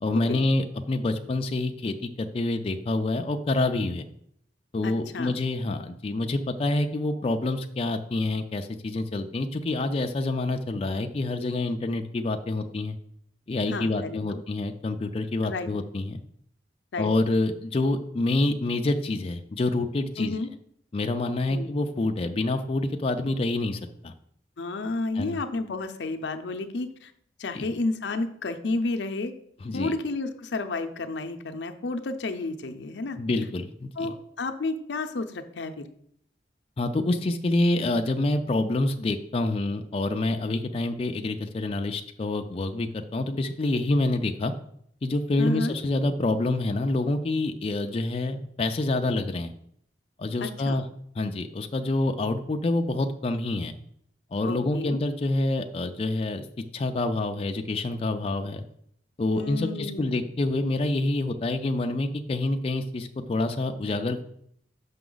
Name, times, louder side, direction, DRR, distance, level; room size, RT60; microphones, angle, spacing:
voice 1, 0.0-4.0 4.7-13.0 13.5-16.2 17.0-20.4 20.9-24.1 25.2-25.4 27.5-27.7 29.6-29.9 33.2-34.1 36.8-44.5 45.0-49.5 50.2-50.9 51.2-53.7 54.3-56.4 56.7-58.6 59.2-64.2, left 2 dB, 35° left, 5 dB, 0.4 m, -27 dB
voice 2, 4.8-5.3 13.7-14.4 15.4-15.7 16.9-17.1 20.2-20.5 21.5-21.7 24.6-27.1 27.4-29.3 29.7-33.2 34.0-35.9 45.4-45.7 50.4-50.8 54.4-55.0 59.3-60.3, left 3 dB, 80° left, 8 dB, 0.6 m, -31 dB
6.0 x 5.6 x 3.9 m, 0.69 s
head